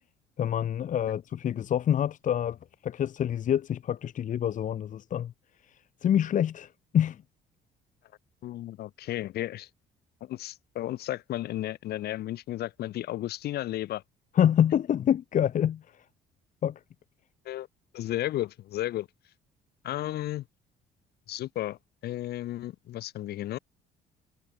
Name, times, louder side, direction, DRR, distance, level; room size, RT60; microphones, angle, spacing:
voice 1, 0.4-2.6 2.8-5.3 6.0-7.2 14.3-15.8 16.6-16.8, left 10 dB, 50° left, 1.3 m, -26 dB
voice 2, 8.4-9.7 10.2-14.0 17.4-17.7 17.9-19.1 19.8-20.4 21.3-23.6, left 14 dB, 70° left, 2.8 m, -33 dB
cardioid pair, 110°, 17 cm